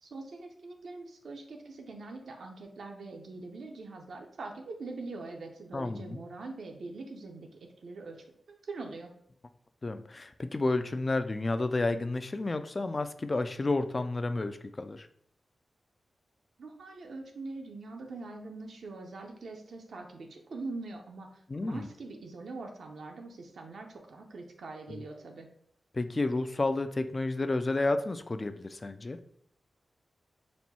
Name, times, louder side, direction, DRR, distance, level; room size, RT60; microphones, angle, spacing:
voice 1, 0.0-7.5 7.8-9.1 16.6-25.5, right 3 dB, 80° right, 2 dB, 0.7 m, -43 dB
voice 2, 5.7-6.2 9.8-15.1 21.5-21.9 24.9-25.0 25.9-29.2, left 2 dB, 35° left, 10 dB, 0.3 m, -31 dB
4.2 x 2.2 x 4.2 m, 0.68 s
wide cardioid pair, 90°, 0 cm